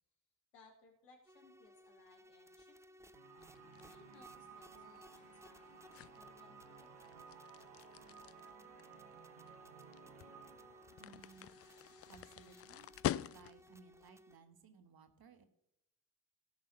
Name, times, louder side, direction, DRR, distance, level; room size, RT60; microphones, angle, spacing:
voice 1, 0.5-2.7 3.0-3.1 3.8-6.9, left 4 dB, 85° left, 1 dB, 2.1 m, -65 dB
sound 1, 1.3-14.4, equal, 5° right, 0.8 m, -61 dB
sound 2, 3.1-12.8, right 6 dB, 85° right, 1.3 m, -58 dB
sound 3, 3.4-13.8, left 12 dB, 35° left, 0.4 m, -46 dB
voice 2, 11.0-12.9 13.3-15.4, right 5 dB, 50° right, 9 dB, 1.7 m, -61 dB
16.5 x 5.7 x 5.6 m, 0.84 s
hypercardioid pair, 40°, 47 cm